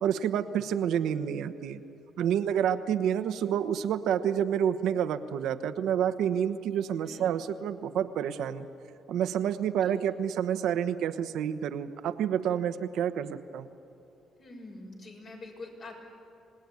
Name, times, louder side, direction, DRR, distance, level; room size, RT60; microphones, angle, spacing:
voice 1, 0.0-1.8 2.2-8.7 9.1-13.7, right 9 dB, 80° right, 10 dB, 1.1 m, -29 dB
voice 2, 14.4-16.0, left 2 dB, 50° left, 1 dB, 6.3 m, -45 dB
26.5 x 18.5 x 9.7 m, 2.7 s
cardioid pair, 90°, 0 cm